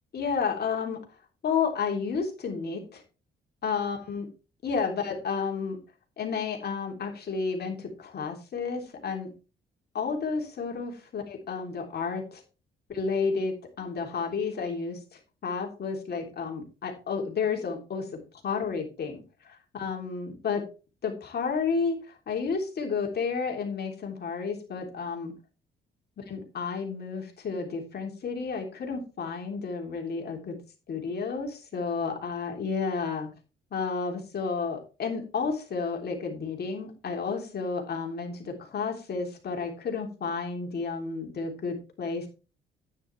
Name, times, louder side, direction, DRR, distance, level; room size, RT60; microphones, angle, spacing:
voice 1, 0.1-1.0 1.4-3.0 3.6-4.3 4.6-5.8 6.2-9.3 9.9-12.4 12.9-18.1 18.4-20.6 21.0-25.3 26.2-30.6 30.9-33.3 33.7-42.3, left 5 dB, 55° left, 2 dB, 3.3 m, -31 dB
9.8 x 9.7 x 3.4 m, 0.32 s
cardioid pair, 90°, 20 cm